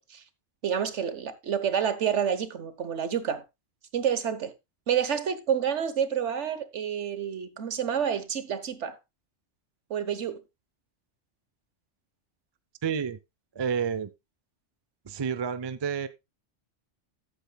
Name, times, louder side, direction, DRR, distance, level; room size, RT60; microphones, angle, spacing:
voice 1, 0.6-3.4 3.9-4.5 4.9-9.0 9.9-10.4, right 8 dB, 70° right, 1.4 m, -28 dB
voice 2, 12.8-13.2 13.6-14.1 15.1-16.1, right 7 dB, 40° right, 0.3 m, -29 dB
14.0 x 8.6 x 2.3 m
omnidirectional pair, 1.3 m